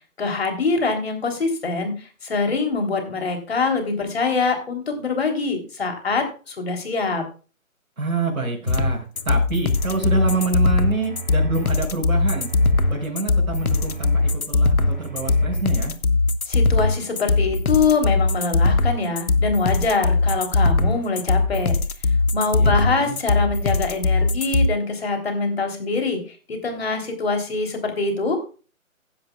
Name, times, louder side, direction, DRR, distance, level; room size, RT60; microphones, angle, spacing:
voice 1, 0.2-7.2 16.5-21.8 22.3-26.2 26.5-28.4, left 4 dB, 45° left, 3 dB, 3.5 m, -24 dB
voice 2, 8.0-12.5 12.9-15.9 22.5-23.2, right 3 dB, 80° right, -3 dB, 5.7 m, -27 dB
sound 1, 8.7-24.7, left 3 dB, 90° left, 1.4 m, -20 dB
sound 2, 9.1-9.2 9.7-10.5 11.0-11.8 12.3-13.0 13.5-14.3 14.8-15.6, right 5 dB, 35° right, 5.4 m, -36 dB
15.5 x 11.0 x 2.4 m, 0.35 s
hypercardioid pair, 165°, 41 cm